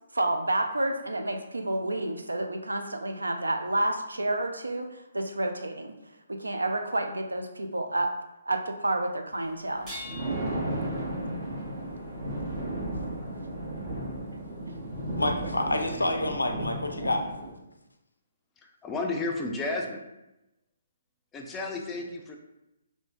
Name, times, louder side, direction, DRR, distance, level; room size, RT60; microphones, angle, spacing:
voice 1, 0.1-6.0 6.3-8.1 8.5-9.9, right 1 dB, 85° right, 5 dB, 0.3 m, -29 dB
sound 1, 9.8-13.0 14.5-14.6 15.5-15.6, left 1 dB, 20° right, 0.9 m, -47 dB
Thunder, 9.8-17.5, right 1 dB, 60° right, 0.9 m, -34 dB
voice 2, 15.2-17.3, left 1 dB, 90° left, 5 dB, 0.4 m, -28 dB
voice 3, 18.8-20.0 21.3-22.4, left 3 dB, 15° left, 1 dB, 0.3 m, -32 dB
3.0 x 2.1 x 2.5 m, 0.93 s
figure-of-eight pair, 135°, 0 cm